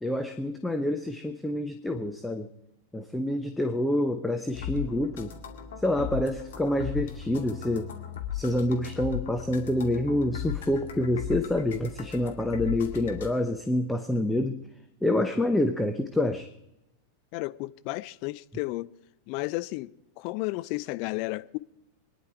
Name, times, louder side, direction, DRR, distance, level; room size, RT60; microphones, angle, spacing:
voice 1, 0.0-2.5 2.9-5.3 5.8-7.9 8.3-14.6 15.0-16.5, left 1 dB, 5° left, 0.9 m, -27 dB
sound 1, 4.5-13.3, left 10 dB, 60° left, 2.2 m, -37 dB
voice 2, 17.3-18.9 19.3-21.6, left 21 dB, 45° left, 0.5 m, -33 dB
25.0 x 10.5 x 4.7 m
figure-of-eight pair, 90°, 0 cm